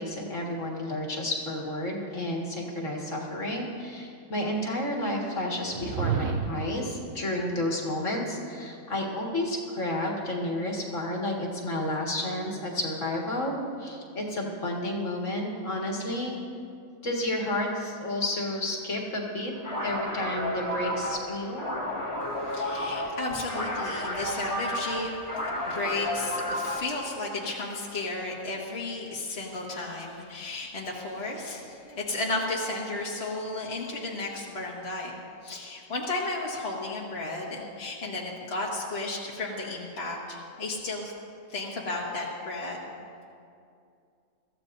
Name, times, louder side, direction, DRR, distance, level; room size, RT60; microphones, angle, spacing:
voice 1, 0.0-16.4 17.0-19.5 19.8-21.7, left 1 dB, 65° left, -1 dB, 2.2 m, -31 dB
sound 1, 5.7-6.8, right 6 dB, 60° right, 0.8 m, -30 dB
sound 2, 19.6-27.0, left 1 dB, 20° left, 2.1 m, -32 dB
voice 2, 22.2-35.2 35.4-41.1 41.5-42.9, left 2 dB, 50° left, -4 dB, 1.8 m, -34 dB
23.0 x 14.5 x 2.6 m, 2.4 s
omnidirectional pair, 1.4 m